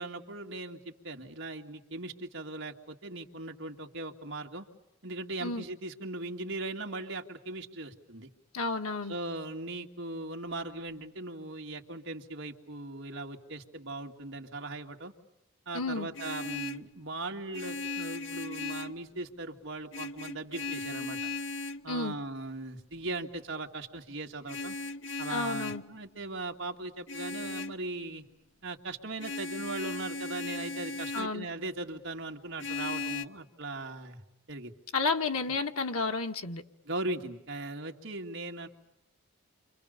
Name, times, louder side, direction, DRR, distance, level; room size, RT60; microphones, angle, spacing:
voice 1, 0.0-4.7 5.0-8.3 9.1-15.1 15.7-21.2 21.8-24.8 25.2-28.2 28.6-34.2 34.5-34.7 36.8-38.7, right 2 dB, 60° right, 2.5 m, -39 dB
voice 2, 8.5-9.2 15.7-16.1 21.9-22.1 25.3-25.8 31.1-31.5 34.9-36.6, left 3 dB, 90° left, 1.9 m, -31 dB
Vehicle horn car horn honking, 15.9-16.9 17.5-19.0 19.9-21.9 24.5-25.9 27.1-27.8 29.2-31.4 32.6-33.2, left 3 dB, 55° left, 1.0 m, -37 dB
29.5 x 26.0 x 6.8 m
head